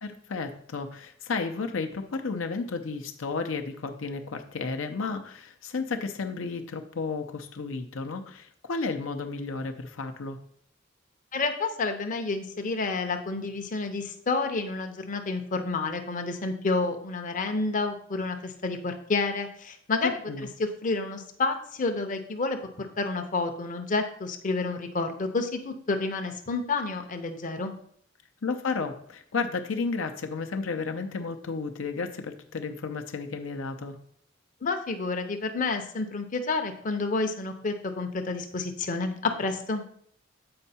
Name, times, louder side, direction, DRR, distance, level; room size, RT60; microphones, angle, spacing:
voice 1, 0.0-10.4 20.0-20.5 28.4-34.0, left 4 dB, 85° left, 6 dB, 0.6 m, -32 dB
voice 2, 11.3-20.2 20.6-27.7 34.6-39.8, left 3 dB, 40° left, 5 dB, 0.7 m, -29 dB
7.7 x 4.5 x 4.2 m, 0.64 s
head